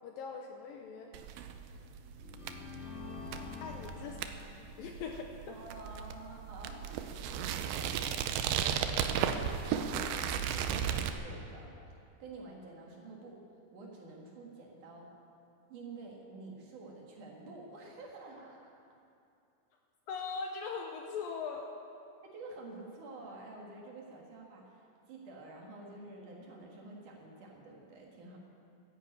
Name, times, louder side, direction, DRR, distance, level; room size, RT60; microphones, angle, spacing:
voice 1, 0.0-1.1 3.6-4.2 4.6-5.6 20.1-21.7, left 5 dB, 75° left, 2 dB, 2.2 m, -41 dB
sound 1, 1.1-11.1, right 8 dB, 75° right, 2.4 m, -35 dB
sound 2, 1.4-1.5 2.1-4.9, left 5 dB, 45° left, 0.8 m, -47 dB
voice 2, 5.5-6.9 9.7-13.4 13.7-15.1 15.7-18.9 22.2-28.4, right 3 dB, 55° right, -1 dB, 3.0 m, -49 dB
13.0 x 10.5 x 8.6 m, 2.5 s
omnidirectional pair, 4.8 m